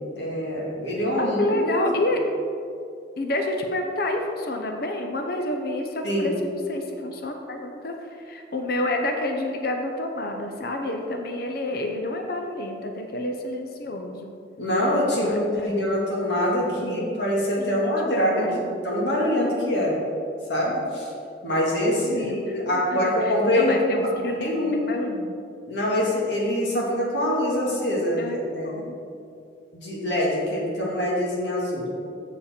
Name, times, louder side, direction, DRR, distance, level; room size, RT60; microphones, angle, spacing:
voice 1, 0.2-1.9 6.0-6.4 14.6-18.6 18.8-20.0 20.5-21.1 21.4-23.8 24.2-24.9 25.7-28.9 29.7-31.9, left 1 dB, 75° left, -4 dB, 2.1 m, -24 dB
voice 2, 1.2-2.2 3.2-14.3 15.1-15.9 16.6-17.1 17.6-17.8 18.1-18.8 22.0-25.3 28.2-28.4 28.6-29.0, left 1 dB, 55° left, 3 dB, 0.7 m, -29 dB
7.3 x 7.1 x 4.4 m, 2.4 s
head